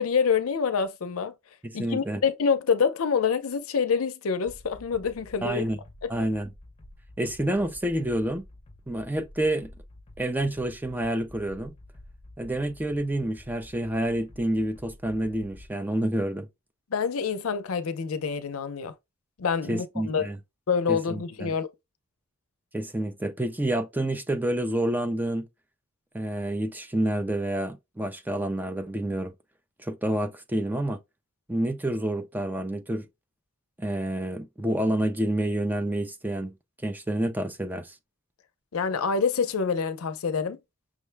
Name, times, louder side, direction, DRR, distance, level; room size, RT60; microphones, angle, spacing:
voice 1, 0.0-1.3 1.7-5.6 16.9-18.9 19.4-20.3 20.7-21.7 38.7-40.6, left 6 dB, 80° left, 0.5 m, -26 dB
voice 2, 1.6-2.2 5.4-5.8 6.1-6.5 7.2-8.4 8.9-9.7 10.2-11.7 12.4-16.5 19.7-20.4 20.9-21.5 22.7-25.5 26.1-29.3 29.8-31.0 31.5-33.1 33.8-36.5 36.8-38.0, right 1 dB, 10° right, 0.4 m, -28 dB
sound 1, 4.4-15.7, left 1 dB, 30° left, 0.7 m, -50 dB
6.1 x 2.1 x 3.3 m
head